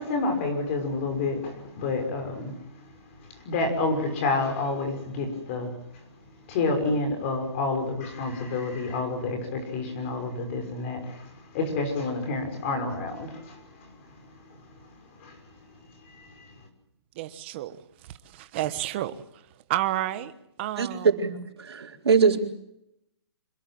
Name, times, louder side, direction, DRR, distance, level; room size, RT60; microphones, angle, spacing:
voice 1, 0.0-14.9 15.2-15.4 15.8-16.5, left 3 dB, 30° left, 5 dB, 6.0 m, -30 dB
voice 2, 17.1-17.8 18.1-19.4 19.7-20.3 20.6-21.1, right 14 dB, 25° right, 12 dB, 1.3 m, -30 dB
voice 3, 20.8-22.4, right 5 dB, 70° right, 3 dB, 4.6 m, -23 dB
26.5 x 22.0 x 7.7 m, 0.81 s
hypercardioid pair, 165°, 14 cm